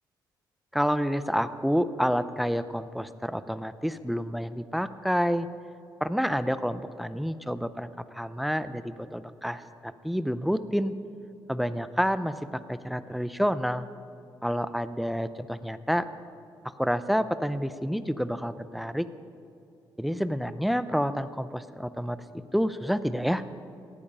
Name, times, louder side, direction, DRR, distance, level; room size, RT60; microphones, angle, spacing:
voice 1, 0.7-5.5 6.0-10.9 11.5-13.9 14.4-16.1 16.6-19.1 20.0-22.2 22.5-23.4, equal, ahead, 13 dB, 0.6 m, -29 dB
18.0 x 13.5 x 5.5 m, 2.5 s
cardioid pair, 110°, 8 cm